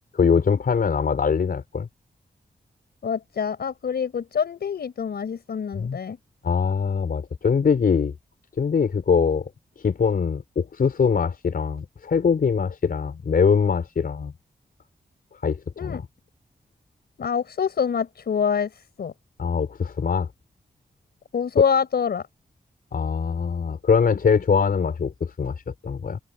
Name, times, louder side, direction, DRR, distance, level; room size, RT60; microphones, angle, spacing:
voice 1, 0.1-1.9 5.7-6.0 6.4-8.1 8.6-9.5 9.8-14.3 15.4-16.0 19.4-20.3 22.9-26.2, left 6 dB, 65° left, 5.2 m, -22 dB
voice 2, 3.0-6.2 15.8-16.0 17.2-18.7 19.0-19.1 21.3-22.2, left 7 dB, 85° left, 5.4 m, -25 dB
open air
wide cardioid pair, 130°, 16 cm